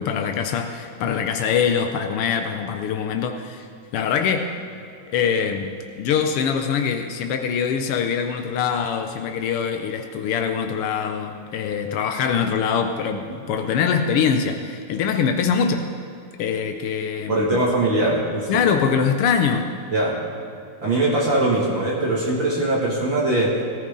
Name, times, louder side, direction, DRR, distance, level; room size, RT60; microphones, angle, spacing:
voice 1, 0.0-3.7 3.9-4.6 5.1-15.9 16.4-17.6 18.5-19.7, left 7 dB, 90° left, 6 dB, 1.2 m, -23 dB
voice 2, 17.3-18.6 19.9-20.2 20.8-23.6, right 2 dB, 45° right, -4 dB, 2.5 m, -21 dB
17.5 x 14.5 x 3.7 m, 2.6 s
omnidirectional pair, 3.4 m